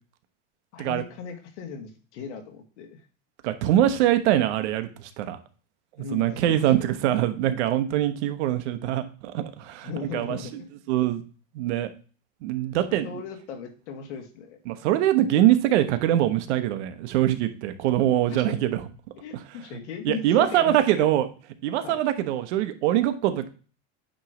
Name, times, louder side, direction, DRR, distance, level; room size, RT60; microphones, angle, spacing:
voice 1, 0.7-3.0 6.0-6.9 9.8-10.7 13.0-14.6 18.3-18.6 19.2-21.3 21.8-22.0, left 6 dB, 85° left, 4 dB, 1.9 m, -37 dB
voice 2, 3.4-5.4 6.1-10.6 10.9-11.2 11.5-11.9 12.4-13.1 14.7-18.8 20.0-21.3 21.6-23.5, right 12 dB, 80° right, 9 dB, 1.1 m, -23 dB
8.8 x 3.2 x 4.9 m, 0.37 s
supercardioid pair, 165°, 34 cm